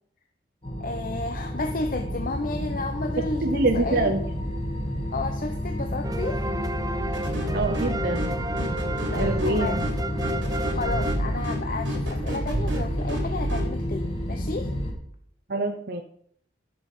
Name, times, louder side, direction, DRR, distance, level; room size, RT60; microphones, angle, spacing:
sound 1, 0.6-14.9, equal, 30° left, 2.7 m, -30 dB
voice 1, 0.8-4.1 5.1-6.5 9.1-9.9 10.7-14.7, left 2 dB, 50° left, 5 dB, 0.7 m, -32 dB
voice 2, 3.2-4.2 7.5-8.5 9.1-9.9 15.5-16.0, right 2 dB, 55° right, 6 dB, 0.8 m, -26 dB
sound 2, 6.0-11.9, right 1 dB, 20° right, 0.7 m, -33 dB
sound 3, 7.1-13.7, equal, 80° right, 3.0 m, -32 dB
12.5 x 6.5 x 5.4 m, 0.65 s
head